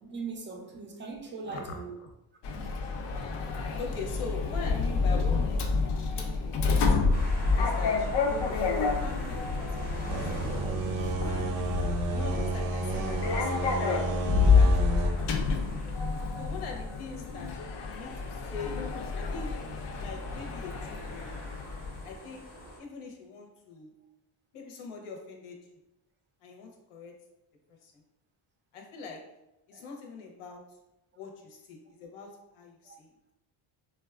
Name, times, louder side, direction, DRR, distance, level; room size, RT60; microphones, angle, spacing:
voice 1, 0.0-1.9 19.2-19.3 29.7-29.8 32.8-32.9, right 4 dB, 25° right, 2 dB, 0.3 m, -40 dB
voice 2, 1.4-1.8 3.8-7.1 7.6-10.7 11.3-11.5 12.1-14.1 14.5-15.5 15.8-15.9 16.4-17.5 17.8-18.8 19.1-19.5 20.0-21.3 22.0-22.4 22.8-23.9 24.5-25.7 26.4-27.1 27.8-27.9 28.7-29.2 29.7-30.6 31.2-33.1, left 4 dB, 85° left, 2 dB, 0.8 m, -42 dB
Sliding door, 2.4-22.0, left 4 dB, 60° left, 0.5 m, -28 dB
sound 1, 7.1-22.8, equal, 20° left, 0.7 m, -45 dB
sound 2, 10.1-15.1, right 3 dB, 85° right, 0.6 m, -32 dB
3.9 x 2.2 x 2.3 m, 0.93 s
cardioid pair, 145°, 49 cm